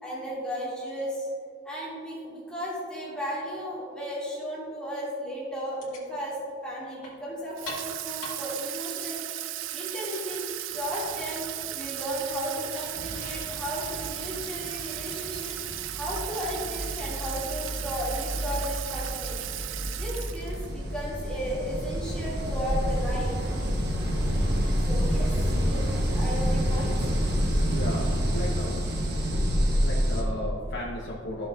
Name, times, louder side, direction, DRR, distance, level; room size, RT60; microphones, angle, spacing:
voice 1, 0.0-1.3 1.6-6.4 6.6-9.2 9.7-11.5 11.7-15.5 15.9-19.4 19.9-23.4 24.8-26.9, equal, 5° left, -9 dB, 2.2 m, -34 dB
sound 1, 5.7-13.9, left 2 dB, 80° left, 2.0 m, -47 dB
Water tap faucet / Sink (filling or washing), 7.6-20.7, right 15 dB, 70° right, 0.3 m, -36 dB
sound 2, 12.4-12.6 12.9-30.2, equal, 55° right, 1.2 m, -28 dB
voice 2, 27.6-28.8 29.2-31.5, left 1 dB, 55° left, -4 dB, 1.0 m, -35 dB
13.5 x 7.0 x 2.4 m, 2.3 s
head